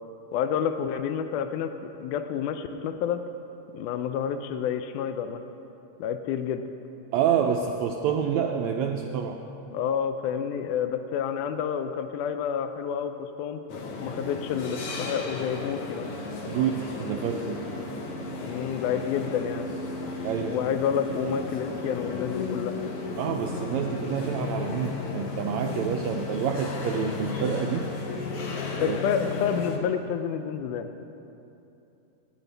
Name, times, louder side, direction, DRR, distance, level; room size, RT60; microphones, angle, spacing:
voice 1, 0.3-3.2 3.7-5.4 6.0-6.6 9.7-13.6 14.0-16.1 18.4-19.7 20.5-22.8 28.8-31.0, left 8 dB, 80° left, 8 dB, 1.9 m, -29 dB
voice 2, 7.1-9.4 16.5-17.6 20.2-20.6 23.2-27.9 28.8-29.2, right 8 dB, 85° right, 3 dB, 1.6 m, -28 dB
sound 1, 13.7-29.8, left 3 dB, 60° left, 1.7 m, -34 dB
20.5 x 10.5 x 3.3 m, 2.9 s
omnidirectional pair, 3.8 m